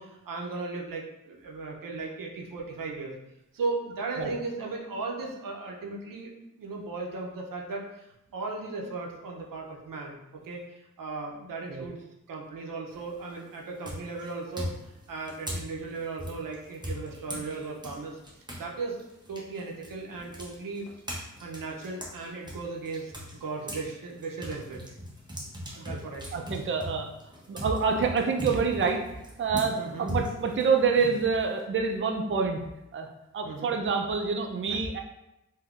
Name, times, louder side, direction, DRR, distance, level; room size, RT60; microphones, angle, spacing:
voice 1, 0.0-3.1 3.5-6.3 6.6-8.1 8.3-19.0 19.3-20.9 21.4-24.8 25.7-26.4 29.8-30.1 33.4-33.7, right 3 dB, 90° right, -1 dB, 0.6 m, -37 dB
sound 1, 12.9-13.3 13.8-18.7 19.0-23.9 24.2-31.6, equal, 15° right, 0.8 m, -39 dB
voice 2, 26.3-27.1 27.5-32.6 32.9-33.1 33.3-35.0, right 5 dB, 40° right, 3 dB, 0.4 m, -27 dB
3.4 x 2.6 x 2.4 m, 0.90 s
cardioid pair, 55°, 32 cm